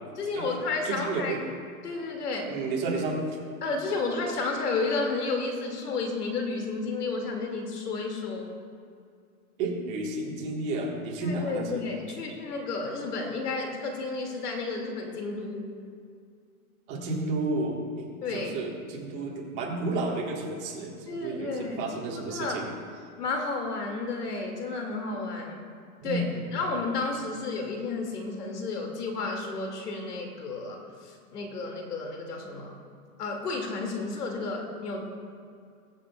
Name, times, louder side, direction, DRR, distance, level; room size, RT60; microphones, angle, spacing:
voice 1, 0.1-1.4 1.8-2.6 3.6-8.5 11.2-15.7 18.2-18.5 21.1-22.6 23.2-25.6 26.0-32.8 33.2-35.3, left 3 dB, 90° left, 2 dB, 2.3 m, -32 dB
voice 2, 0.8-1.4 2.5-3.4 9.6-11.8 16.9-22.7 26.0-26.6, right 2 dB, 25° right, -2 dB, 1.4 m, -32 dB
22.0 x 7.5 x 2.3 m, 2.3 s
hypercardioid pair, 160°, 45 cm